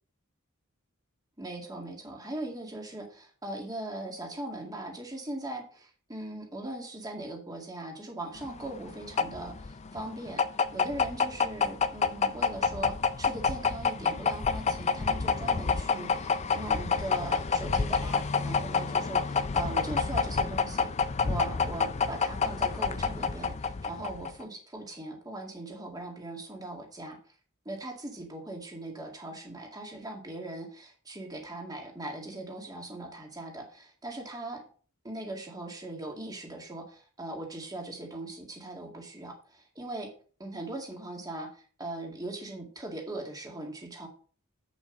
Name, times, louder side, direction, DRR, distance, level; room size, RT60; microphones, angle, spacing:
voice 1, 1.4-10.4 10.7-20.9 21.2-27.2 27.7-34.6 35.0-40.1 40.4-44.1, right 2 dB, 20° right, 1 dB, 2.1 m, -40 dB
sound 1, 8.4-24.4, left 5 dB, 30° left, 0.4 m, -28 dB
8.0 x 7.2 x 4.0 m, 0.42 s
head